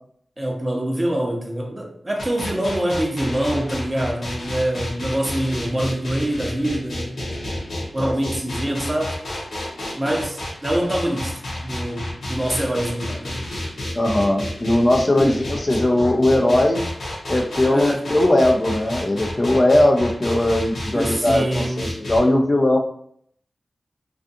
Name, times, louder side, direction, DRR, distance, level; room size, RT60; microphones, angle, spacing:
voice 1, 0.4-7.2 7.9-9.2 10.0-13.4 15.1-15.4 17.7-18.0 20.9-21.9, right 1 dB, 30° right, 0.7 m, -25 dB
sound 1, 2.2-22.2, left 1 dB, 85° left, 0.7 m, -30 dB
voice 2, 13.9-16.8 17.3-22.8, left 1 dB, 35° left, 0.4 m, -19 dB
2.4 x 2.4 x 2.6 m
cardioid pair, 45°, 0 cm